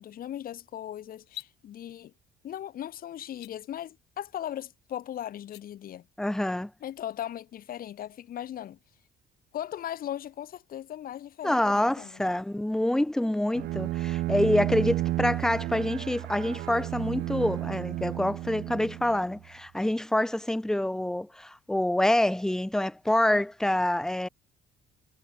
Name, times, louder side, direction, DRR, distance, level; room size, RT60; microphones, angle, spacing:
voice 1, 0.0-2.1 2.4-6.1 6.8-8.8 9.5-12.3, left 11 dB, 60° left, 4.3 m, -38 dB
sound 1, 1.3-1.5 3.3-3.5 5.4-5.6, left 20 dB, 90° left, 6.6 m, -43 dB
voice 2, 6.2-6.7 11.4-24.3, left 1 dB, 5° left, 0.6 m, -26 dB
Bowed string instrument, 13.5-19.4, right 16 dB, 75° right, 1.4 m, -32 dB
cardioid pair, 110°, 17 cm